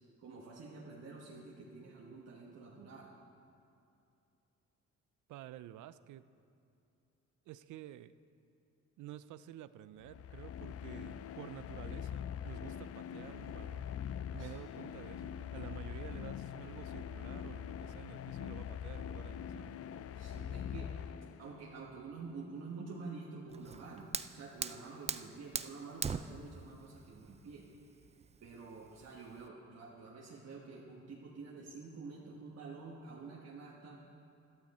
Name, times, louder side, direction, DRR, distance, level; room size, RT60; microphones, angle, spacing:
voice 1, 0.2-3.1 14.4-14.5 20.1-20.9 21.4-27.7 28.4-34.0, right 4 dB, 55° right, -3 dB, 1.4 m, -48 dB
voice 2, 5.3-6.3 7.5-8.1 9.0-13.9 14.3-19.8, right 13 dB, 75° right, 15 dB, 0.5 m, -50 dB
sound 1, 10.0-21.7, left 9 dB, 50° left, 0.4 m, -43 dB
Fire, 23.5-29.5, right 6 dB, 20° right, 0.4 m, -42 dB
13.5 x 12.5 x 4.2 m, 2.6 s
cardioid pair, 90°, 30 cm